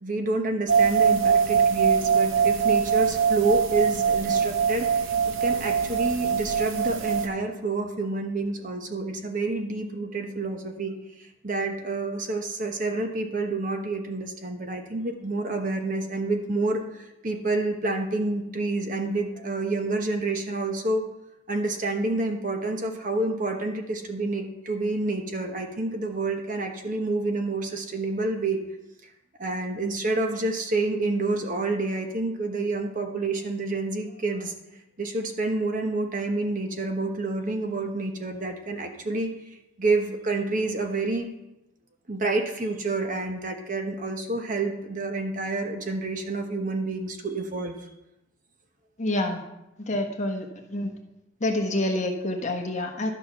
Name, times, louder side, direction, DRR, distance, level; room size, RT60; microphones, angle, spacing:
voice 1, 0.0-21.0 21.5-28.6 29.4-34.5 35.0-39.3 39.8-41.3 42.1-47.8, right 2 dB, 40° right, 4 dB, 1.0 m, -28 dB
sound 1, 0.7-7.3, right 6 dB, 85° right, 0.9 m, -22 dB
voice 2, 49.0-49.4 49.9-50.9 51.4-53.1, left 1 dB, 35° left, 2 dB, 1.2 m, -27 dB
12.0 x 6.0 x 5.7 m, 0.91 s
head